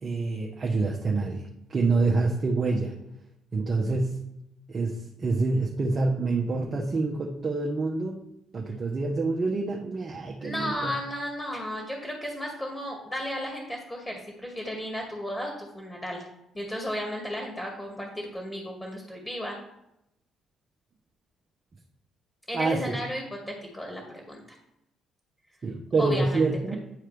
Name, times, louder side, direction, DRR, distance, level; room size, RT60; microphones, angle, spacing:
voice 1, 0.0-2.9 3.5-4.2 4.7-8.2 8.5-10.9 22.5-23.0 25.6-26.8, right 3 dB, 45° right, 0 dB, 1.0 m, -27 dB
voice 2, 10.4-16.2 16.5-19.6 22.5-24.6 26.0-26.5, equal, 15° left, 0 dB, 2.2 m, -34 dB
10.5 x 4.5 x 3.4 m, 0.85 s
hypercardioid pair, 45°, 0 cm